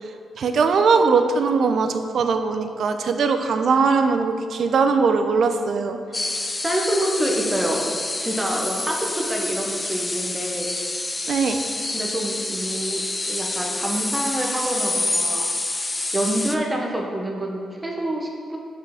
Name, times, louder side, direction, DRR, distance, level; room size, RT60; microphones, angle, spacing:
voice 1, 0.4-6.0 11.3-11.6, right 5 dB, 55° right, 7 dB, 0.4 m, -20 dB
sound 1, 6.1-16.6, left 2 dB, 20° left, 0.3 m, -27 dB
voice 2, 6.6-7.9 8.2-10.7 11.9-13.0 13.3-15.5 16.1-18.6, right 1 dB, 10° right, -1 dB, 0.8 m, -26 dB
6.3 x 4.4 x 3.5 m, 2.2 s
cardioid pair, 140°, 0 cm